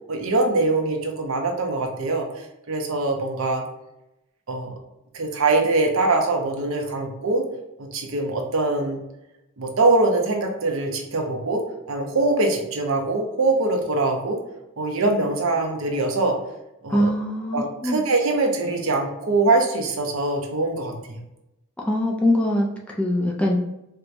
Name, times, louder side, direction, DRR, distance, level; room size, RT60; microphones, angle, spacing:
voice 1, 0.1-2.3 2.7-3.6 4.5-4.7 5.1-7.4 7.8-9.0 9.6-14.4 14.8-16.4 16.8-17.1 17.5-21.2, right 2 dB, 75° right, 3 dB, 0.6 m, -23 dB
voice 2, 16.9-18.0 21.8-23.6, left 1 dB, 5° left, -2 dB, 0.3 m, -23 dB
4.4 x 2.2 x 2.5 m, 0.89 s
head